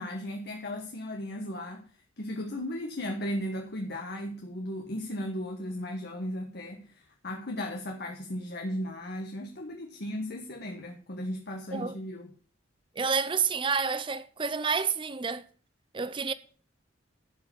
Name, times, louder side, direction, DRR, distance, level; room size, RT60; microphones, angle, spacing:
voice 1, 0.0-1.9 2.2-12.3, left 1 dB, 55° left, 1.2 m, -36 dB
voice 2, 13.0-15.4 15.9-16.3, right 5 dB, 25° right, 0.6 m, -29 dB
12.0 x 4.7 x 6.9 m
head